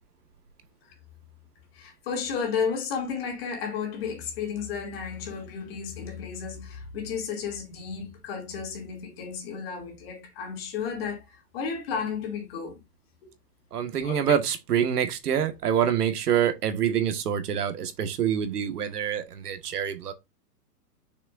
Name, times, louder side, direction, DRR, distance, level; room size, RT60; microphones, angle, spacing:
voice 1, 1.7-12.8 13.2-13.3 14.0-14.3, left 6 dB, 35° left, 2.8 m, -33 dB
voice 2, 13.7-20.1, right 9 dB, 70° right, 1.7 m, -26 dB
6.8 x 6.5 x 2.6 m
hypercardioid pair, 165°, 48 cm